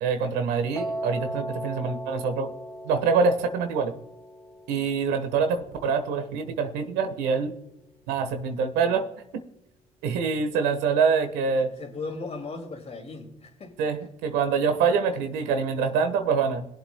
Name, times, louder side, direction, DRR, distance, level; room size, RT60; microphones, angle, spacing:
voice 1, 0.0-2.5 2.8-3.9 4.7-7.5 8.1-9.1 9.3-9.4 10.0-11.7 13.8-16.6, right 5 dB, 90° right, 1.3 m, -25 dB
Piano, 0.7-6.9, right 1 dB, 15° left, 2.9 m, -38 dB
voice 2, 11.6-14.1, left 3 dB, 40° left, 2.5 m, -38 dB
22.0 x 7.9 x 2.2 m
supercardioid pair, 80°, 17 cm